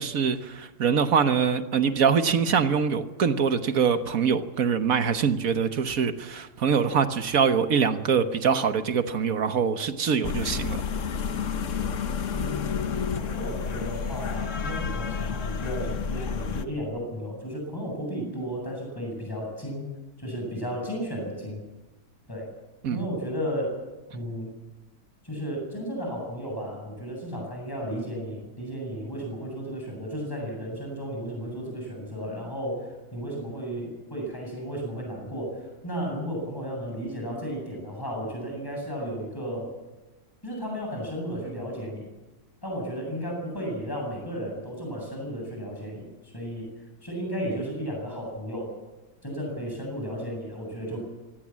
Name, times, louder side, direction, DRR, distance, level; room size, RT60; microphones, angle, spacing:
voice 1, 0.0-10.8 22.8-23.0, right 6 dB, 65° right, 9 dB, 1.6 m, -24 dB
sound 1, 10.2-16.6, left 6 dB, 55° left, 1.3 m, -30 dB
voice 2, 12.3-19.9 20.2-21.6 22.3-22.5 22.9-23.8 24.1-24.5 25.2-39.7 40.4-42.1 42.6-46.7 47.0-48.7 49.2-51.0, equal, 15° left, -1 dB, 7.8 m, -34 dB
24.5 x 17.0 x 7.5 m, 1.1 s
omnidirectional pair, 1.7 m